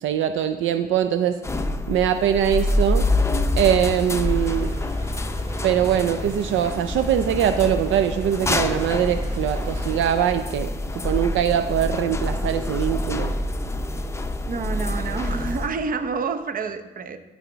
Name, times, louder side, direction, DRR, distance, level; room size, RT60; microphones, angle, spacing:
voice 1, 0.0-1.4 1.9-3.1 3.6-4.7 5.6-10.7 11.0-13.3, right 9 dB, 75° right, 9 dB, 0.4 m, -22 dB
sound 1, 1.4-15.7, left 1 dB, 15° left, 0.6 m, -26 dB
sound 2, 4.1-10.3, right 1 dB, 25° right, 2.2 m, -41 dB
voice 2, 14.5-17.2, right 5 dB, 45° right, 9 dB, 0.8 m, -28 dB
12.0 x 4.9 x 3.9 m, 1.1 s
cardioid pair, 90°, 20 cm